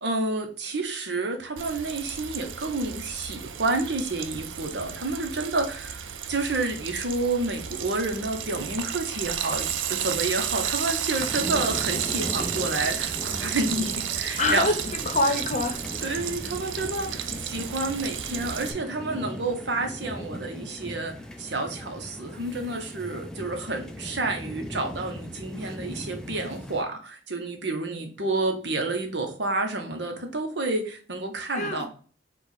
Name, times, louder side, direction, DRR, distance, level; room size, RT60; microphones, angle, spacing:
voice 1, 0.0-14.8 16.0-31.9, right 2 dB, 65° right, 4 dB, 1.0 m, -29 dB
Frying (food), 1.6-18.7, right 9 dB, 85° right, 0.5 m, -32 dB
sound 1, 11.2-26.8, equal, 5° left, 0.4 m, -39 dB
voice 2, 14.3-14.8 15.1-16.2 31.5-31.9, left 2 dB, 40° left, 6 dB, 0.8 m, -26 dB
4.6 x 2.5 x 3.9 m, 0.40 s
head